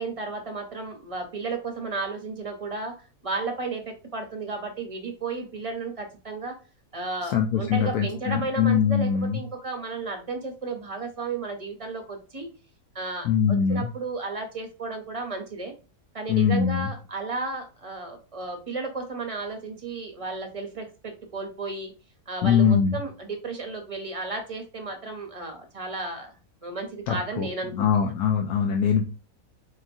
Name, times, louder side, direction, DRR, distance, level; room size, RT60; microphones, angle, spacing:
voice 1, 0.0-2.9 3.2-6.6 6.9-12.5 12.9-15.7 16.1-21.9 22.3-27.9, right 3 dB, 30° right, 3 dB, 0.6 m, -33 dB
voice 2, 7.3-9.4 13.2-13.9 16.3-16.9 22.4-23.0 27.1-29.0, left 7 dB, 80° left, 3 dB, 1.1 m, -22 dB
4.7 x 2.9 x 2.6 m, 0.33 s
omnidirectional pair, 1.6 m